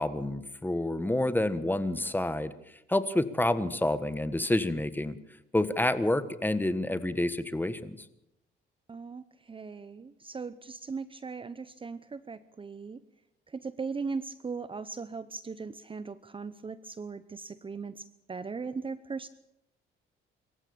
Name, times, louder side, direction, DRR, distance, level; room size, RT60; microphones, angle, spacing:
voice 1, 0.0-2.5 2.9-5.2 5.5-8.0, left 1 dB, 10° left, 12 dB, 1.5 m, -28 dB
voice 2, 8.9-13.0 13.5-19.3, right 4 dB, 25° right, 14 dB, 0.8 m, -39 dB
25.5 x 14.5 x 7.2 m, 0.83 s
cardioid pair, 90°, 20 cm